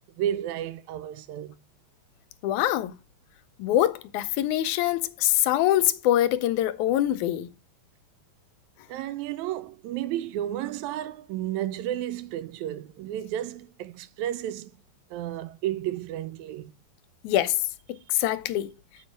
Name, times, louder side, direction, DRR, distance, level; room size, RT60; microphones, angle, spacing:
voice 1, 0.2-1.6 8.9-14.7 15.1-16.7, right 12 dB, 80° right, 1.9 m, -32 dB
voice 2, 2.4-2.9 3.6-7.5 17.2-18.7, left 13 dB, 85° left, 2.1 m, -24 dB
8.5 x 4.6 x 5.0 m
omnidirectional pair, 3.4 m